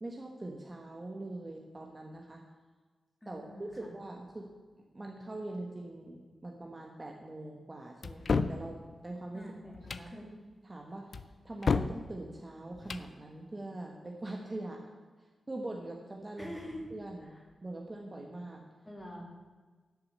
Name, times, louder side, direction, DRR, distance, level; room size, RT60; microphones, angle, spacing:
voice 1, 0.0-2.4 3.3-4.5 4.9-9.5 9.9-10.1 10.6-14.9 15.5-16.5 16.9-18.6, right 2 dB, 20° right, 1 dB, 1.2 m, -43 dB
voice 2, 3.2-3.9 9.3-10.4 16.4-16.8 17.2-17.4 18.8-19.2, equal, 10° left, -1 dB, 2.7 m, -45 dB
sound 1, 8.0-8.6 9.7-10.1 11.1-12.0 12.7-13.1, left 4 dB, 45° left, 0.5 m, -30 dB
11.5 x 6.7 x 8.4 m, 1.4 s
wide cardioid pair, 150°, 0 cm